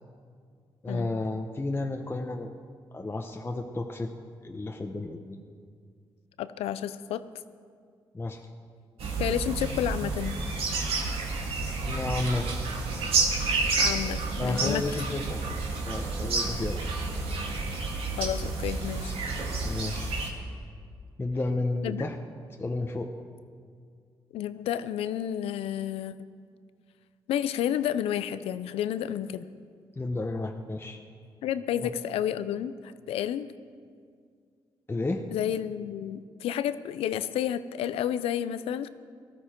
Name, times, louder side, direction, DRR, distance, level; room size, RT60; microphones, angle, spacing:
voice 1, 0.8-2.5 2.9-4.1 4.4-5.4 8.1-8.4 11.8-12.5 14.4-16.8 19.6-20.2 21.2-22.2 22.6-23.1 30.0-31.0 31.8-31.9 34.9-35.2, left 2 dB, 25° left, 3 dB, 1.0 m, -32 dB
voice 2, 6.4-7.2 9.2-10.4 13.7-14.8 18.2-19.1 21.8-22.0 24.3-26.3 27.3-29.5 31.4-33.5 35.3-38.9, left 10 dB, 85° left, 14 dB, 0.5 m, -31 dB
sound 1, 9.0-20.3, right 3 dB, 80° right, 2.0 m, -30 dB
19.0 x 13.0 x 4.5 m, 2.1 s
cardioid pair, 65°, 10 cm